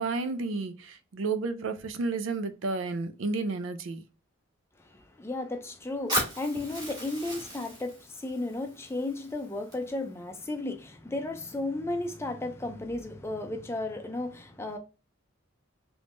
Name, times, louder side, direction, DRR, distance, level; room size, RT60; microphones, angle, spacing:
voice 1, 0.0-4.0, right 3 dB, 75° right, 0.4 m, -31 dB
voice 2, 4.8-14.8, left 2 dB, 15° left, 0.4 m, -34 dB
Fire, 6.1-10.1, equal, 20° right, 1.5 m, -36 dB
3.5 x 3.1 x 2.5 m
head